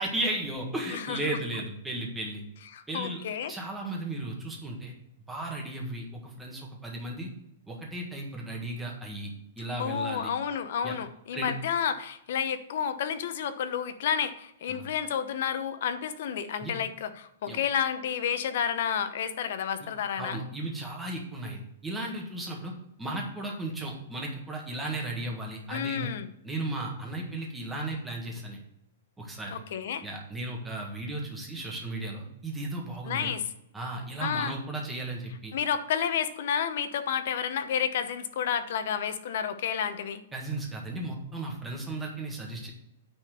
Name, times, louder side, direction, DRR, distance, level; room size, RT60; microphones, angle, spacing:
voice 1, 0.0-2.4 2.9-3.2 3.5-4.9 5.3-7.3 7.7-10.3 10.8-11.0 11.3-11.5 14.7-14.9 16.6-16.7 17.5-17.6 20.2-26.1 26.4-28.6 29.2-29.6 30.0-33.3 33.7-35.5 40.3-42.7, right 2 dB, 5° right, -1 dB, 1.5 m, -35 dB
voice 2, 2.7-3.5 9.8-20.4 25.7-26.3 29.5-30.0 33.1-33.4 34.2-34.5 35.5-40.2, left 8 dB, 50° left, 11 dB, 0.8 m, -30 dB
9.7 x 4.2 x 6.8 m, 0.80 s
hypercardioid pair, 170°, 0 cm